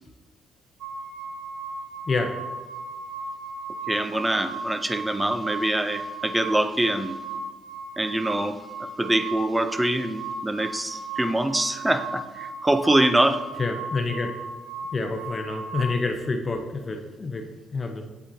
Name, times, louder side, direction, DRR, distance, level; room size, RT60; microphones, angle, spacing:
sound 1, 0.8-15.8, right 3 dB, 70° right, 0.7 m, -36 dB
voice 1, 3.9-7.2 8.0-13.4, right 1 dB, 10° right, 10 dB, 0.6 m, -24 dB
voice 2, 13.6-14.3 14.9-18.1, left 3 dB, 35° left, 3 dB, 0.8 m, -28 dB
8.8 x 8.1 x 2.8 m, 1.2 s
cardioid pair, 90°, 0 cm